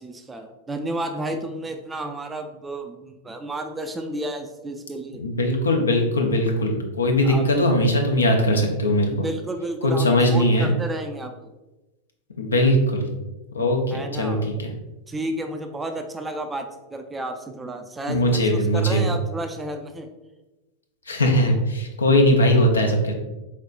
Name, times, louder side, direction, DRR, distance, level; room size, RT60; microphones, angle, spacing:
voice 1, 0.0-5.2 7.2-7.7 9.1-11.3 13.9-14.4 15.1-20.1, right 1 dB, 10° right, 6 dB, 0.4 m, -32 dB
voice 2, 5.2-9.3 9.8-10.7 12.4-13.1 13.5-14.7 18.1-19.0 21.1-23.1, left 1 dB, 75° left, 2 dB, 0.7 m, -20 dB
4.2 x 3.9 x 2.4 m, 1.1 s
figure-of-eight pair, 90°, 0 cm